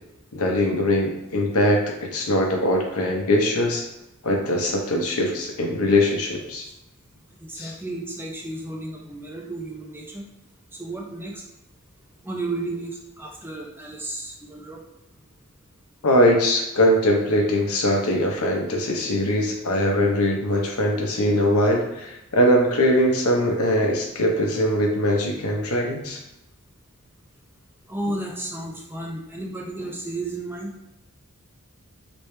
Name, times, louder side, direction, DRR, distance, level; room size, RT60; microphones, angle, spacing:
voice 1, 0.3-3.8 4.2-6.7 7.6-7.7 16.0-26.2, left 1 dB, 85° left, 1 dB, 0.8 m, -21 dB
voice 2, 7.4-10.3 10.7-11.4 12.2-14.8 27.9-30.8, right 2 dB, 10° right, -1 dB, 0.6 m, -33 dB
3.1 x 3.0 x 3.2 m, 0.91 s
head